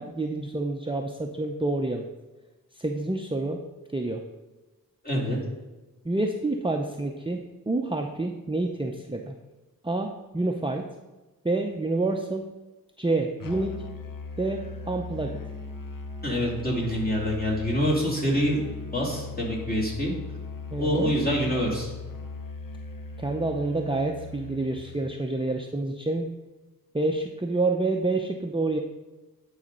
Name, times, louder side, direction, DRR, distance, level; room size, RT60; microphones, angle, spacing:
voice 1, 0.0-2.0 2.7-3.6 3.9-4.2 6.0-9.3 9.8-10.9 11.4-12.4 13.0-13.7 14.4-15.4 20.7-21.1 23.2-26.3 26.9-28.8, right 2 dB, 15° right, 2 dB, 0.6 m, -28 dB
voice 2, 5.0-5.4 16.2-18.6 18.9-20.1 20.8-21.9, equal, 25° left, -4 dB, 2.9 m, -26 dB
Musical instrument, 13.4-25.1, left 4 dB, 65° left, 0.8 m, -39 dB
10.5 x 4.0 x 5.3 m, 1.1 s
wide cardioid pair, 50°, 35 cm